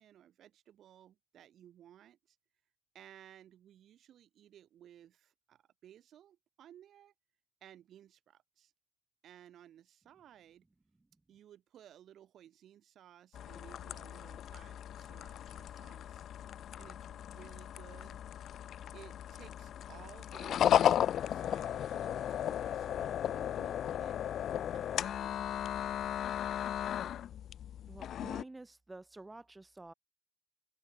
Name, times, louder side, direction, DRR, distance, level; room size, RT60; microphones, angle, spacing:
voice 1, 0.0-2.4 2.9-7.1 7.6-8.7 9.2-10.6 11.3-16.2 16.8-18.2 18.9-21.0 21.3-24.2 24.7-25.9, right 11 dB, 75° right, 6.7 m, -58 dB
sound 1, 13.3-28.4, left 10 dB, 75° left, 1.5 m, -35 dB
voice 2, 27.9-29.9, right 2 dB, 20° right, 3.1 m, -50 dB
cardioid pair, 70°, 0 cm